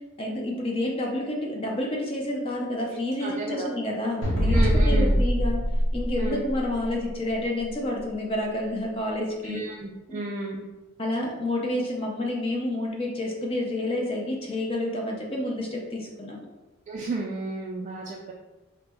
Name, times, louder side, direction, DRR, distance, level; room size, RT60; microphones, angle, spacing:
voice 1, 0.2-5.6 5.9-9.6 10.1-10.2 11.0-16.5, left 1 dB, 30° left, -1 dB, 0.5 m, -29 dB
voice 2, 3.2-3.7 4.5-5.2 6.2-6.4 9.4-10.7 16.9-18.3, right 2 dB, 35° right, -2 dB, 0.3 m, -32 dB
sound 1, 4.2-6.9, equal, 75° left, 0.8 m, -22 dB
3.9 x 2.1 x 3.3 m, 1.1 s
head